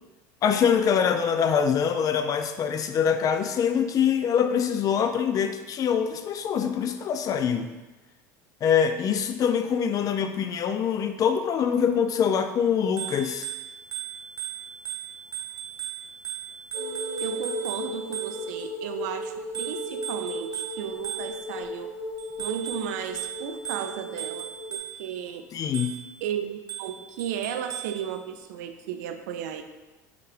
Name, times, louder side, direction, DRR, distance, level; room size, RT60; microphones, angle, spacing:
voice 1, 0.4-7.7 8.6-13.5 25.5-26.0, left 7 dB, 40° left, 8 dB, 0.4 m, -24 dB
Bicycle bell, 12.8-18.7 19.5-21.6 22.2-25.2 25.7-26.2 26.7-28.0, right 11 dB, 40° right, 0.9 m, -37 dB
sound 1, 16.7-24.8, left 1 dB, 65° left, 1.3 m, -36 dB
voice 2, 17.2-21.9 22.4-25.4 26.2-29.6, right 9 dB, 75° right, 8 dB, 0.4 m, -34 dB
5.8 x 2.4 x 3.2 m, 1.2 s
hypercardioid pair, 85°, 9 cm